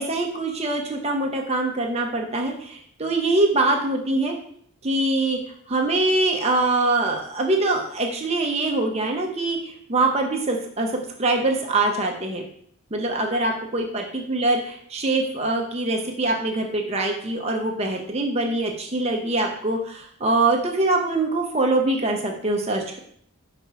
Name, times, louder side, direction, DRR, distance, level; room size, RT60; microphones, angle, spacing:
voice 1, 0.0-4.4 4.8-5.4 5.7-10.9 11.2-12.4 12.9-14.6 14.9-23.0, right 2 dB, 30° right, 2 dB, 0.7 m, -23 dB
5.3 x 4.1 x 4.7 m, 0.64 s
head